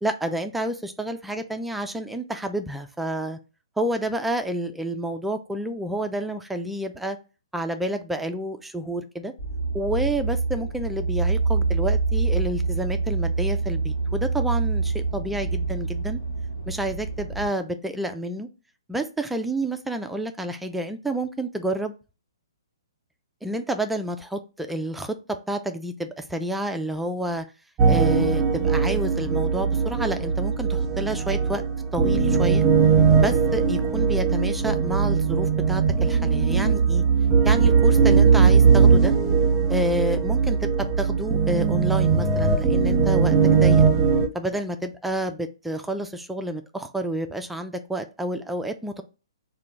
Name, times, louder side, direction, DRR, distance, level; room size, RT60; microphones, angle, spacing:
voice 1, 0.0-3.4 3.8-7.2 7.5-9.3 9.7-16.2 16.7-18.5 18.9-21.9 23.4-27.5 27.9-31.6 31.9-32.6 33.2-37.0 37.4-39.1 39.7-43.8 44.3-49.0, right 1 dB, 5° right, 6 dB, 0.3 m, -29 dB
sound 1, 9.4-17.5, right 3 dB, 80° left, 1.1 m, -26 dB
sound 2, 27.8-44.3, right 5 dB, 20° right, 0.7 m, -20 dB
3.7 x 2.2 x 3.4 m, 0.32 s
figure-of-eight pair, 125°, 3 cm